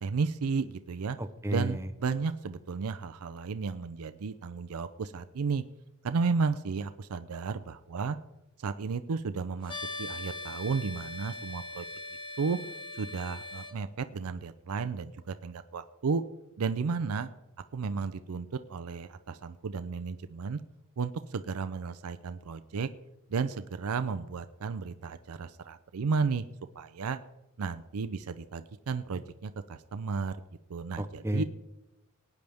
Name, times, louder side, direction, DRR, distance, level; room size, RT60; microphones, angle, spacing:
voice 1, 0.0-1.2 1.5-5.6 6.0-8.2 8.6-11.9 12.4-12.6 12.9-16.2 16.6-17.3 17.7-20.6 21.0-22.9 23.3-26.5 26.8-27.2 27.6-30.4 30.7-31.4, right 5 dB, 80° right, 11 dB, 0.5 m, -33 dB
voice 2, 1.2-1.9 31.0-31.4, right 1 dB, 10° right, 9 dB, 0.6 m, -32 dB
sound 1, 9.7-13.7, left 2 dB, 25° left, 1.1 m, -40 dB
19.0 x 9.3 x 3.5 m, 0.93 s
head